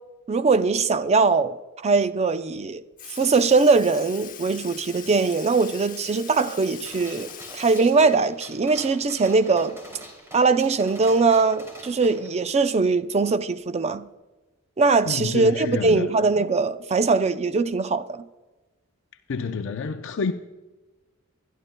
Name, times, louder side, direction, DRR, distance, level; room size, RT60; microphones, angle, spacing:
voice 1, 0.3-1.6 1.8-2.8 3.1-9.8 10.3-14.1 14.8-18.2, right 4 dB, 30° right, 0.4 m, -21 dB
Sink (filling or washing) / Liquid, 2.5-2.7 3.0-9.1 9.4-9.5 11.1-11.2 12.1-12.2 13.0-13.2 14.1-14.2, left 8 dB, 40° left, 0.9 m, -42 dB
Gunshot gunfire, 6.9-12.3, equal, 10° right, 2.6 m, -44 dB
voice 2, 15.1-16.1 19.3-20.3, left 4 dB, 60° left, 0.5 m, -28 dB
20.5 x 12.0 x 2.2 m
head